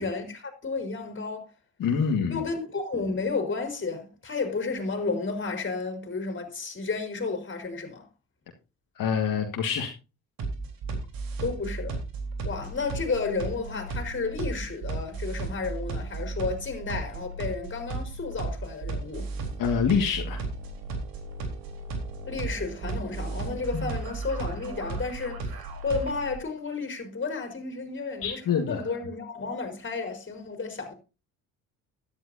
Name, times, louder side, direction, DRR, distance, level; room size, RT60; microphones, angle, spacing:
voice 1, 0.0-1.5 2.3-8.1 11.4-12.0 12.4-19.3 22.3-25.5 25.8-30.9, left 4 dB, 30° left, 4.5 m, -32 dB
voice 2, 1.8-2.4 9.0-9.9 19.6-20.4 23.7-23.9 28.2-28.9, left 6 dB, 65° left, 1.9 m, -26 dB
sound 1, 10.4-26.4, right 3 dB, 70° right, 3.7 m, -34 dB
13.5 x 11.0 x 2.7 m
supercardioid pair, 80°, 36 cm